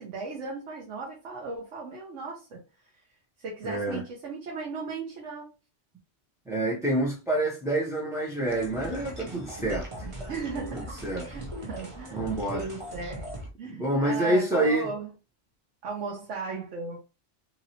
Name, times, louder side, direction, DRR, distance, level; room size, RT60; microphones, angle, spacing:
voice 1, 0.0-2.6 3.4-5.5 10.3-12.2 12.5-13.3 13.6-15.1 15.8-17.0, right 3 dB, 85° right, 1.2 m, -36 dB
voice 2, 3.6-4.0 6.5-10.1 10.7-11.3 12.1-12.7 13.7-14.9, right 1 dB, 5° right, 0.3 m, -27 dB
sound 1, 8.5-13.5, right 1 dB, 30° right, 0.7 m, -39 dB
3.0 x 2.6 x 2.8 m
omnidirectional pair, 1.2 m